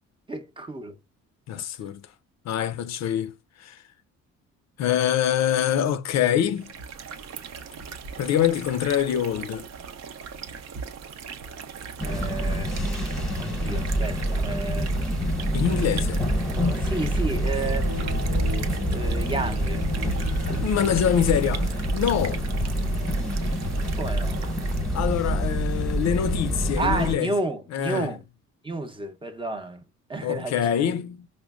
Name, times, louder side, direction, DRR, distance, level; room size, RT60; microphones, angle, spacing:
voice 1, 0.3-1.0 12.0-12.9 13.4-14.9 15.6-16.1 16.6-17.9 18.9-19.9 24.0-24.4 26.8-28.2 28.6-29.8 30.1-30.6, right 3 dB, 15° right, 0.6 m, -31 dB
voice 2, 1.5-2.0 2.5-3.3 3.6-3.8 4.8-6.7 8.2-9.7 15.5-16.2 17.5-17.7 20.6-22.5 24.9-27.3 27.7-28.1 30.2-31.3, left 9 dB, 60° left, 0.5 m, -25 dB
sound 1, 6.5-25.1, right 7 dB, 60° right, 0.6 m, -39 dB
sound 2, 12.0-27.1, equal, ahead, 1.0 m, -26 dB
sound 3, 17.5-24.5, equal, 85° right, 1.1 m, -42 dB
4.9 x 2.1 x 2.3 m
cardioid pair, 90°, 30 cm